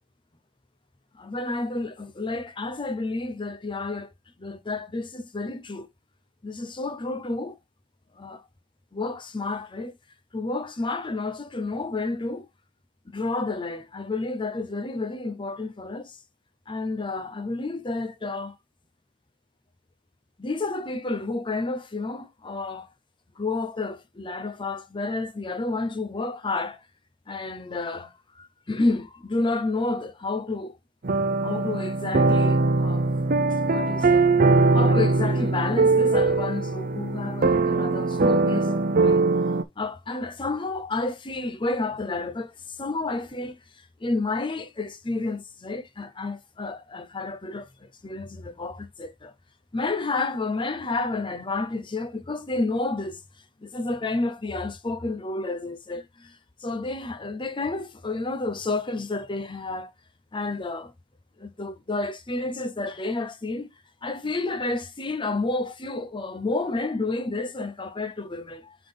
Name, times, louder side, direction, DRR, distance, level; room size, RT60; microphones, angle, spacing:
voice 1, 1.1-4.1 4.4-5.9 6.4-7.6 8.2-8.4 8.9-10.0 10.3-12.5 13.1-16.2 16.7-18.5 20.4-22.9 23.4-26.8 27.3-30.8 31.4-33.1 33.7-34.3 34.7-39.2 39.8-43.6 44.0-49.3 49.7-53.2 53.6-59.9 60.3-60.9 61.4-63.7 64.0-68.8, left 3 dB, 25° left, 0.8 m, -30 dB
sound 1, 31.0-39.6, right 3 dB, 50° right, 0.7 m, -21 dB
7.5 x 3.9 x 3.4 m
head